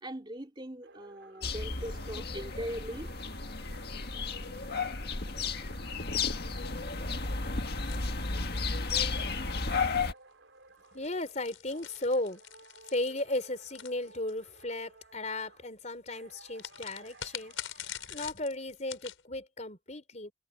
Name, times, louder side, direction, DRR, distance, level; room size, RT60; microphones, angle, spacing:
voice 1, 0.0-3.1, equal, 25° right, 3.0 m, -40 dB
sound 1, 0.8-11.4 11.7-15.7 16.1-18.3, right 2 dB, 65° right, 4.8 m, -56 dB
sound 2, 1.4-10.1, left 4 dB, 50° left, 1.8 m, -33 dB
sound 3, 7.9-9.9 10.8-14.6 16.5-19.2, left 10 dB, 80° left, 5.0 m, -45 dB
voice 2, 10.9-12.4 12.9-20.3, left 2 dB, 35° left, 4.1 m, -35 dB
head